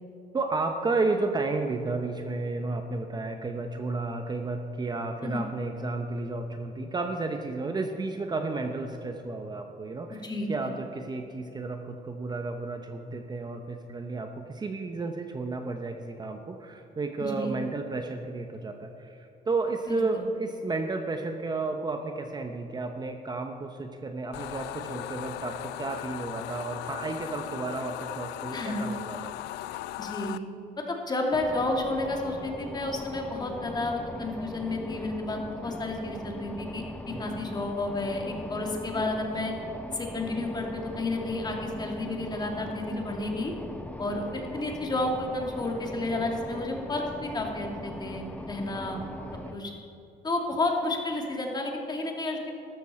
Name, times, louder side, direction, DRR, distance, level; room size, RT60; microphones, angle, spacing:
voice 1, 0.3-29.3 37.1-37.4 48.7-49.0, right 3 dB, 25° right, 5 dB, 0.8 m, -32 dB
voice 2, 10.2-10.7 17.2-17.5 19.9-20.2 28.5-28.8 30.0-30.4 30.9-39.5 39.9-43.5 44.0-49.0 49.5-49.7 50.2-52.5, left 2 dB, 25° left, 1 dB, 2.2 m, -31 dB
sound 1, 24.3-30.4, left 15 dB, 85° left, 0.4 m, -38 dB
sound 2, 31.3-49.5, left 2 dB, 10° left, 0.7 m, -40 dB
13.0 x 13.0 x 4.3 m, 2.8 s
cardioid pair, 110°, 17 cm